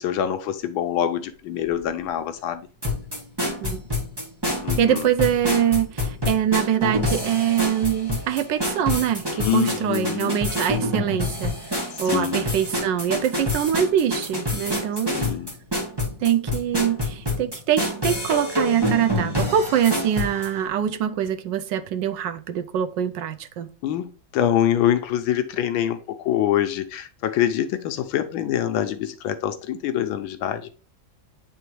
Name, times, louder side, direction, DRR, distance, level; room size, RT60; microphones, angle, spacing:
voice 1, 0.0-2.7 4.6-5.1 9.3-10.4 11.9-12.5 15.1-15.5 23.8-30.7, left 10 dB, 75° left, 1.3 m, -25 dB
sound 1, 2.8-20.5, left 1 dB, 15° right, 1.3 m, -27 dB
voice 2, 4.8-15.2 16.2-23.7, right 9 dB, 75° right, 1.1 m, -24 dB
8.8 x 3.5 x 3.0 m
omnidirectional pair, 2.3 m